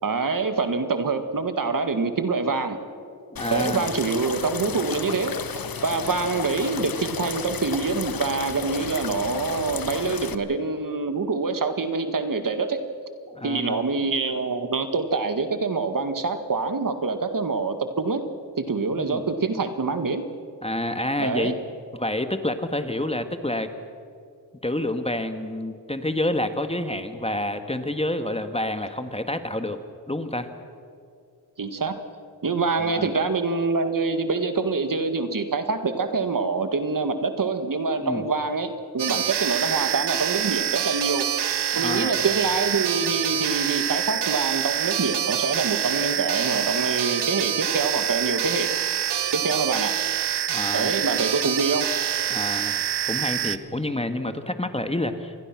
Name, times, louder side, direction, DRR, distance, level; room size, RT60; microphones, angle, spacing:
voice 1, 0.0-2.8 3.5-5.4 5.8-12.8 13.4-18.2 18.6-20.3 21.2-21.5 31.6-32.0 32.4-41.3 41.8-48.7 49.3-49.9 50.7-51.9, right 4 dB, 50° right, 8 dB, 1.9 m, -25 dB
voice 2, 3.3-3.9 13.3-13.8 19.0-19.2 20.6-21.5 21.9-23.7 24.6-29.8 30.1-30.5 32.9-33.1 38.0-38.2 41.7-42.1 50.5-50.9 52.3-52.8 53.1-55.3, left 1 dB, 15° left, 8 dB, 1.6 m, -28 dB
sound 1, 3.4-10.4, left 6 dB, 55° left, 1.3 m, -33 dB
sound 2, 39.0-53.6, right 10 dB, 65° right, 1.0 m, -26 dB
28.0 x 21.0 x 6.1 m, 2.3 s
cardioid pair, 60°, 43 cm